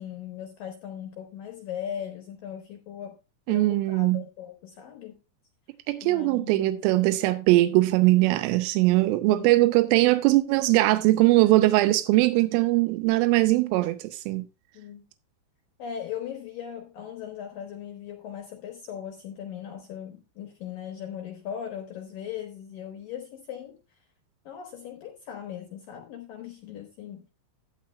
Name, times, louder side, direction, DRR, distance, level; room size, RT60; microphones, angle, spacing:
voice 1, 0.0-3.2 3.5-5.2 6.0-6.8 9.3-9.6 14.7-15.0 15.8-23.8 24.5-27.2, left 9 dB, 75° left, 2.0 m, -39 dB
voice 2, 3.5-4.2 5.9-14.4, right 18 dB, 90° right, 3.2 m, -21 dB
14.0 x 9.9 x 2.2 m
omnidirectional pair, 5.7 m